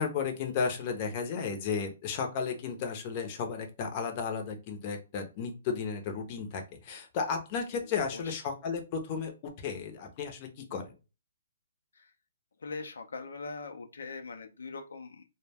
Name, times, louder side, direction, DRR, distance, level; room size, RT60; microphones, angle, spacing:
voice 1, 0.0-10.9, left 5 dB, 30° left, 4 dB, 0.6 m, -34 dB
voice 2, 7.8-8.4 11.9-12.1 12.6-15.2, left 4 dB, 85° left, 4 dB, 0.5 m, -42 dB
2.2 x 2.1 x 3.3 m, 0.30 s
hypercardioid pair, 155°, 0 cm